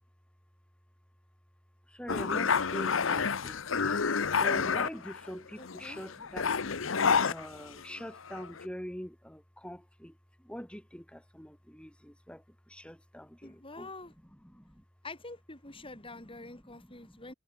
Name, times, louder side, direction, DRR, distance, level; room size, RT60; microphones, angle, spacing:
voice 1, 1.9-3.6 4.4-6.7 7.2-10.1 10.4-13.9 14.4-14.8 16.4-17.2, equal, 5° left, 5.3 m, -44 dB
sound 1, 2.1-5.3 5.6-8.0 8.3-8.6, left 5 dB, 75° left, 1.0 m, -29 dB
voice 2, 5.6-6.0 13.4-14.1 15.0-17.3, left 2 dB, 25° left, 5.7 m, -46 dB
head